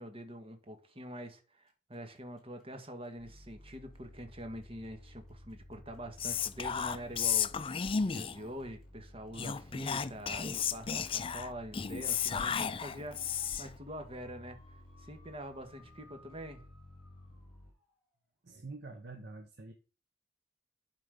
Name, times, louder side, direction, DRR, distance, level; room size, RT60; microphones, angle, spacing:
voice 1, 0.0-16.6, equal, 30° right, 1.6 m, -45 dB
sound 1, 1.7-18.1, left 2 dB, ahead, 3.6 m, -64 dB
sound 2, 3.2-17.7, left 1 dB, 55° left, 5.7 m, -55 dB
Whispering, 6.2-8.5 9.3-13.8, left 7 dB, 30° left, 0.4 m, -33 dB
voice 2, 18.4-19.7, right 3 dB, 65° right, 1.0 m, -46 dB
11.5 x 4.2 x 5.2 m
head